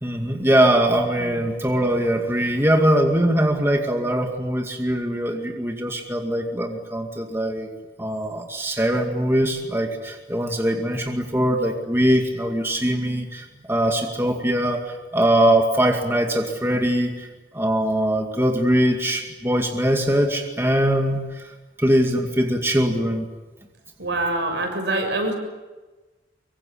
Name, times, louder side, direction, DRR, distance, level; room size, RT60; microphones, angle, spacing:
voice 1, 0.0-7.7 8.0-17.3 17.5-23.3, right 1 dB, 15° right, 2 dB, 2.3 m, -22 dB
voice 2, 24.0-25.3, right 2 dB, 85° right, 4 dB, 6.9 m, -25 dB
24.5 x 24.0 x 8.7 m, 1.2 s
head